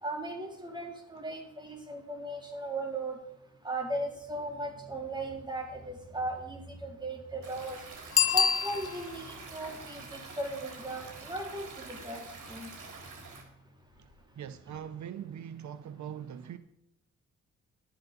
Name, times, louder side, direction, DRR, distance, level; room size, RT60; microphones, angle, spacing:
voice 1, 0.0-3.2 3.6-7.8 8.3-12.7, right 1 dB, 15° right, 3.6 m, -37 dB
Stream, 7.4-13.4, right 4 dB, 85° right, 3.7 m, -46 dB
Bicycle bell, 8.1-9.3 14.7-14.8, left 7 dB, 45° left, 0.7 m, -26 dB
voice 2, 14.4-16.6, right 9 dB, 70° right, 0.7 m, -41 dB
12.0 x 10.5 x 5.2 m
cardioid pair, 105°, 30 cm